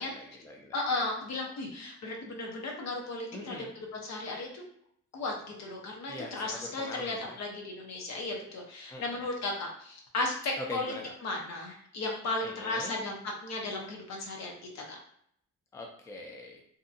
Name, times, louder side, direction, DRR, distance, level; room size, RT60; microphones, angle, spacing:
voice 1, 0.0-0.8 3.3-3.7 6.1-7.4 8.9-9.3 10.6-11.1 12.4-12.9 15.7-16.6, left 2 dB, 10° left, 1 dB, 0.4 m, -42 dB
voice 2, 0.7-3.6 3.9-4.6 5.1-5.3 5.6-10.3 10.7-10.9 11.2-15.0, left 2 dB, 60° left, 0 dB, 0.8 m, -35 dB
2.7 x 2.2 x 2.5 m, 0.67 s
cardioid pair, 90°, 30 cm